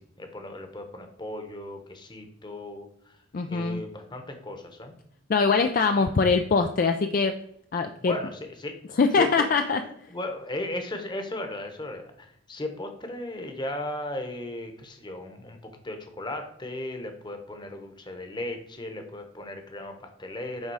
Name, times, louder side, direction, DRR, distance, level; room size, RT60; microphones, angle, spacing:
voice 1, 0.0-3.2 3.5-4.9 6.0-6.1 8.0-8.8 9.2-20.7, left 1 dB, 20° left, 6 dB, 1.0 m, -36 dB
voice 2, 3.3-3.8 5.3-7.4 7.7-8.1 9.0-9.8, left 4 dB, 40° left, 6 dB, 0.4 m, -22 dB
9.5 x 3.6 x 4.8 m, 0.71 s
head